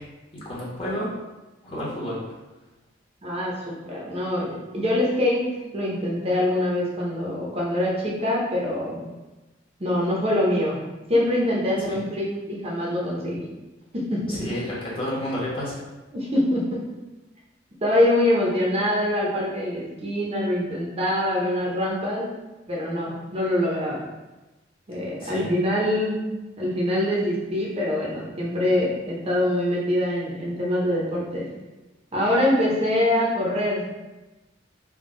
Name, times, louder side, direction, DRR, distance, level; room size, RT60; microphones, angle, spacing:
voice 1, 0.4-1.1 1.6-2.2 11.9-12.0 14.3-15.8 25.2-25.5, left 1 dB, 30° left, -7 dB, 1.1 m, -30 dB
voice 2, 3.2-5.4 5.7-9.0 9.8-10.8 11.1-13.4 13.9-14.4 16.1-16.8 17.8-22.3 22.7-24.0 24.9-26.2 26.6-31.5 32.1-33.9, left 1 dB, 35° right, -4 dB, 0.7 m, -24 dB
3.6 x 2.2 x 3.7 m, 1.1 s
head